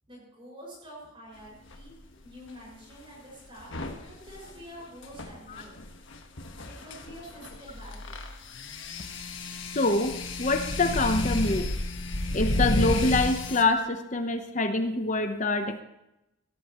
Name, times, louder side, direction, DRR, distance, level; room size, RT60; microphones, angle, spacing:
voice 1, 0.1-1.9 2.2-5.7 6.6-8.2, equal, 25° right, -4 dB, 5.9 m, -47 dB
sound 1, 1.7-1.9 3.6-13.6, left 1 dB, 70° left, 1.4 m, -32 dB
voice 2, 9.7-11.7 12.3-15.8, left 2 dB, 35° left, 8 dB, 0.9 m, -25 dB
16.0 x 14.0 x 3.1 m, 0.89 s
head